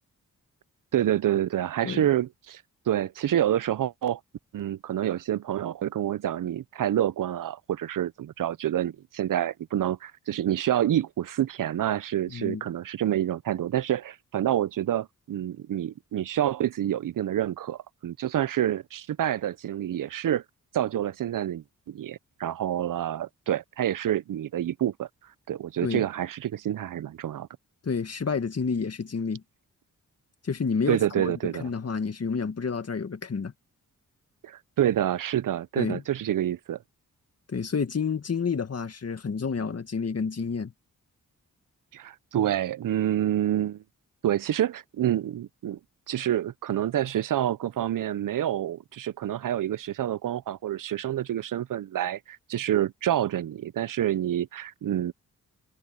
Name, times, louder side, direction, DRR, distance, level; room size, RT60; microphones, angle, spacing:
voice 1, 0.9-4.2 4.5-20.4 20.7-25.1 25.5-27.5 30.9-31.7 34.4-36.8 41.9-43.8 44.2-45.8 46.1-55.1, right 11 dB, 70° right, 0.6 m, -28 dB
voice 2, 12.3-12.6 25.8-26.0 27.8-29.4 30.4-33.5 35.8-36.0 37.5-40.7, left 5 dB, 45° left, 1.9 m, -29 dB
open air
cardioid pair, 70°, 34 cm